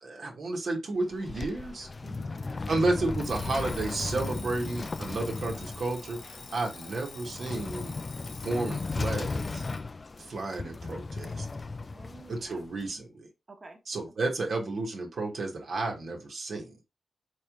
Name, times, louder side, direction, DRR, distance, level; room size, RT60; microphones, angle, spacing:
voice 1, 0.0-1.9 2.7-7.9 8.4-9.6 10.2-11.5 12.3-13.3 13.9-16.8, right 2 dB, 70° right, 1 dB, 1.2 m, -32 dB
sound 1, 1.0-12.9, left 3 dB, 40° left, 0.3 m, -36 dB
voice 2, 2.0-2.4 10.5-10.7 11.8-12.6 13.5-13.8, right 2 dB, 40° right, 2 dB, 1.1 m, -50 dB
Alarm, 3.2-9.9, left 4 dB, 65° left, 1.2 m, -47 dB
4.6 x 3.2 x 2.3 m, 0.24 s
cardioid pair, 70°, 0 cm